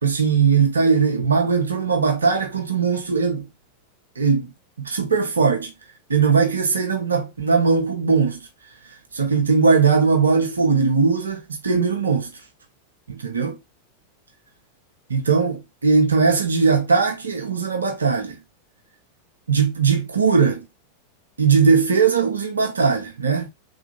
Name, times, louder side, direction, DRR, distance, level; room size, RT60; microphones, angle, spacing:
voice 1, 0.0-3.5 4.2-4.5 4.8-5.7 6.1-8.4 9.1-12.3 13.1-13.6 15.1-18.4 19.5-20.6 21.4-23.5, right 5 dB, 75° right, 0.7 m, -19 dB
3.4 x 2.7 x 2.7 m
figure-of-eight pair, 90°, 0 cm